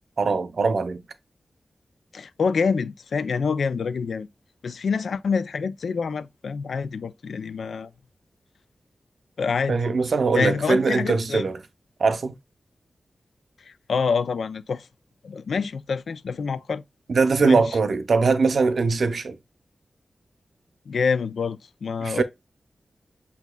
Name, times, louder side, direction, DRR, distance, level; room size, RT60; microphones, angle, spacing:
voice 1, 0.2-1.0 9.7-11.6 12.0-12.4 17.1-19.4 22.0-22.2, right 4 dB, 75° right, 0.6 m, -21 dB
voice 2, 2.1-4.3 4.6-7.9 9.4-9.8 10.3-11.5 13.7-14.9 15.2-16.8 17.4-17.6 20.9-22.2, left 5 dB, 90° left, 0.4 m, -26 dB
8.1 x 2.7 x 2.2 m
wide cardioid pair, 75°, 0 cm